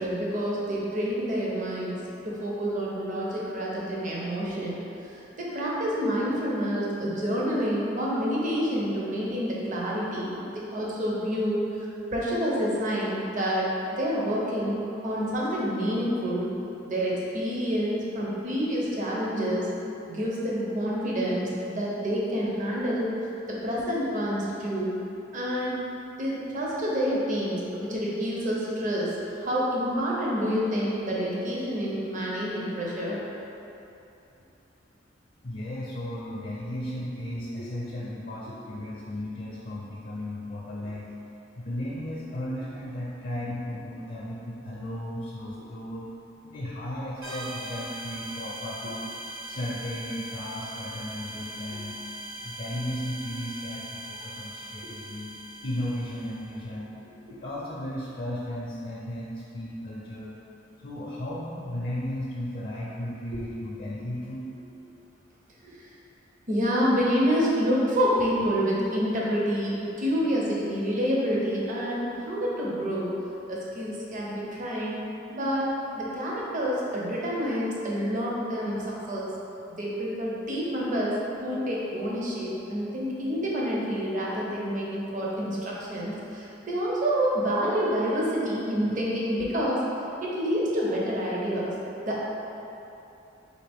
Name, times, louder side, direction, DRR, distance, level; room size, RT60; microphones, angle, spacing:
voice 1, 0.0-4.8 5.1-11.7 12.1-16.5 16.8-19.7 20.1-23.1 23.5-24.9 25.3-25.8 26.2-33.2 43.4-43.5 57.3-57.4 63.3-63.4 65.6-65.8 66.5-73.1 73.5-75.0 75.3-79.3 79.7-89.8 90.2-91.7 92.0-92.2, equal, 40° right, -5 dB, 0.7 m, -28 dB
voice 2, 35.4-41.2 41.5-46.1 46.4-49.1 49.5-52.0 52.4-55.4 55.6-56.9 57.3-60.4 60.8-64.5, left 1 dB, 45° left, -6 dB, 0.5 m, -35 dB
sound 1, 47.2-56.6, right 1 dB, 80° right, 0.9 m, -40 dB
4.1 x 2.9 x 3.4 m, 2.9 s
head